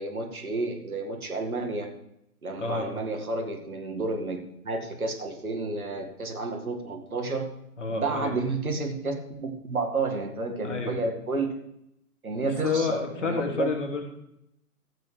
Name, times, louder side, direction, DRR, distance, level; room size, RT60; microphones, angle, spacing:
voice 1, 0.0-1.9 2.4-4.4 4.6-7.5 7.9-11.5 12.2-13.7, right 3 dB, 65° right, 3 dB, 2.2 m, -31 dB
voice 2, 2.6-2.9 7.8-8.3 10.6-11.0 12.6-14.0, left 4 dB, 50° left, 2 dB, 2.7 m, -29 dB
14.5 x 9.0 x 3.4 m, 0.79 s
figure-of-eight pair, 140°, 47 cm